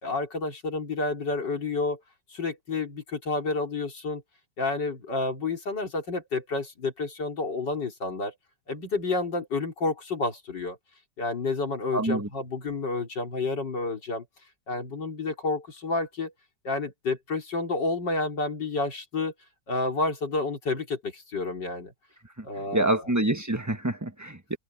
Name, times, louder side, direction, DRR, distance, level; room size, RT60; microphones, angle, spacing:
voice 1, 0.0-2.0 2.3-4.2 4.6-8.3 8.7-10.8 11.2-14.2 14.7-16.3 16.6-19.3 19.7-21.9 22.4-23.1, left 3 dB, 75° left, 4.4 m, -30 dB
voice 2, 11.9-12.3 22.4-22.5 22.7-24.6, right 1 dB, 10° right, 1.4 m, -26 dB
omnidirectional pair, 1.9 m